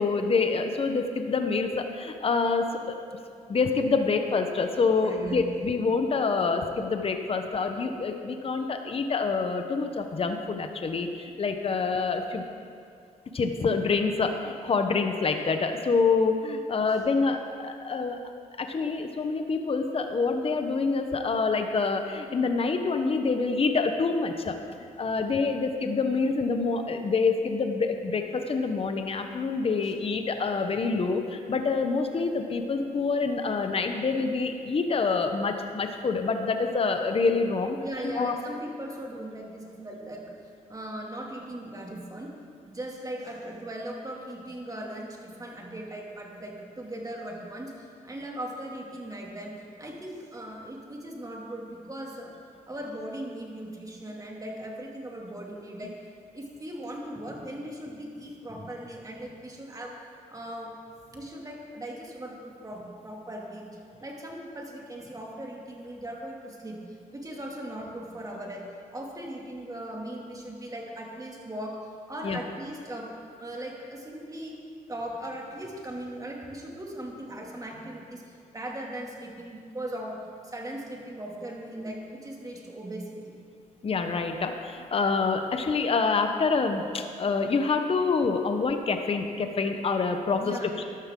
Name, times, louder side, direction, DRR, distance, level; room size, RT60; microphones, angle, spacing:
voice 1, 0.0-3.0 3.5-12.4 13.3-18.2 18.6-24.5 25.0-37.8 38.2-38.3 72.2-72.4 83.8-90.8, left 4 dB, 40° left, 6 dB, 1.0 m, -26 dB
voice 2, 4.9-5.9 29.8-29.9 37.8-40.2 40.7-42.3 42.7-52.3 52.7-55.9 56.3-59.9 60.3-60.7 61.1-66.8 67.1-68.7 68.9-71.8 72.1-73.1 73.4-74.6 74.9-83.3 90.4-90.8, right 1 dB, 25° right, -1 dB, 2.5 m, -39 dB
13.5 x 12.0 x 3.8 m, 2.3 s
cardioid pair, 70°, 14 cm